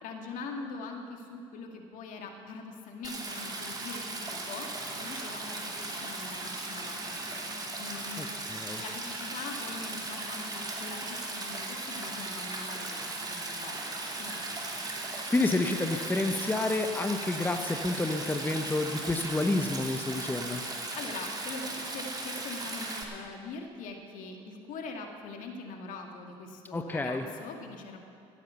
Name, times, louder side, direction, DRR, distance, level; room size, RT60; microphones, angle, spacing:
voice 1, 0.0-4.7 5.0-7.0 7.3-7.4 7.8-8.2 8.8-14.5 20.6-28.0, left 3 dB, 60° left, 3 dB, 2.1 m, -43 dB
Stream, 3.0-23.0, right 2 dB, 25° right, 2.8 m, -37 dB
voice 2, 8.2-8.8 15.3-20.6 26.7-27.2, left 2 dB, 15° left, 6 dB, 0.9 m, -29 dB
16.5 x 9.3 x 7.0 m, 2.5 s
hypercardioid pair, 70°, 15 cm